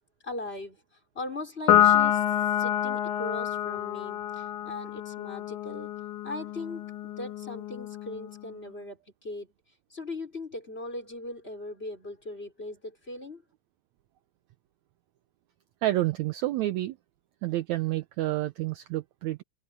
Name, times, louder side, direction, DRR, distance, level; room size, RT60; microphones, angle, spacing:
voice 1, 0.2-0.8 1.1-2.2 2.6-5.9 6.2-9.5 9.9-13.4, left 2 dB, 15° left, 4.9 m, -39 dB
Piano, 1.7-8.4, left 11 dB, 75° left, 2.5 m, -27 dB
voice 2, 15.8-17.0 17.4-19.4, right 16 dB, 75° right, 1.8 m, -29 dB
omnidirectional pair, 3.7 m